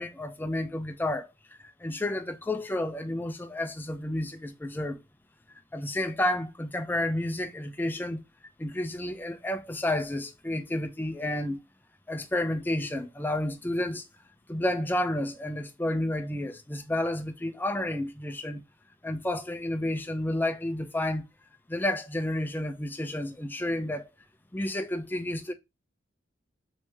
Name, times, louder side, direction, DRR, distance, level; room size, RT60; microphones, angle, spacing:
voice 1, 0.0-1.3 1.8-5.0 5.7-8.2 8.6-11.6 12.1-14.1 14.5-18.6 19.0-21.2 21.7-24.1 24.5-25.5, left 1 dB, 10° left, 0.4 m, -31 dB
3.3 x 3.2 x 3.1 m
head